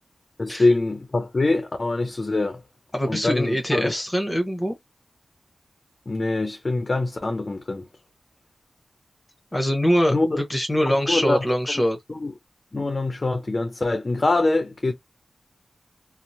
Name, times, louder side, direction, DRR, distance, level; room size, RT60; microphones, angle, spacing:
voice 1, 0.4-2.6 3.1-3.9 6.1-7.9 10.1-10.4 10.9-11.4 12.1-12.3 12.7-14.9, left 2 dB, 45° left, 0.6 m, -24 dB
voice 2, 2.9-4.8 9.5-12.0, equal, 20° left, 0.9 m, -23 dB
2.9 x 2.0 x 2.6 m
cardioid pair, 50°, 0 cm